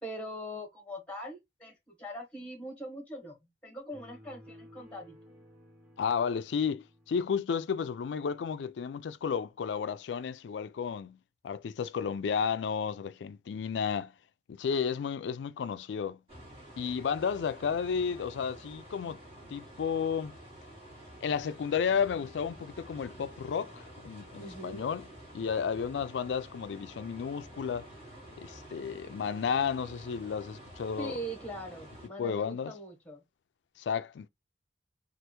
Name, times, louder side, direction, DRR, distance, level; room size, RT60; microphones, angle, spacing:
voice 1, 0.0-3.4 3.6-5.2 24.4-24.9 31.0-33.2, equal, 5° left, 1.1 m, -42 dB
sound 1, 3.9-7.5, equal, 10° right, 1.3 m, -55 dB
voice 2, 6.0-11.2 11.4-14.1 14.5-16.2 16.8-19.2 19.5-20.3 21.2-25.1 25.3-27.9 28.4-31.1 32.2-32.7 33.8-34.3, left 6 dB, 85° left, 0.3 m, -32 dB
sound 2, 16.3-32.1, right 1 dB, 35° right, 1.8 m, -50 dB
3.3 x 2.5 x 2.9 m
head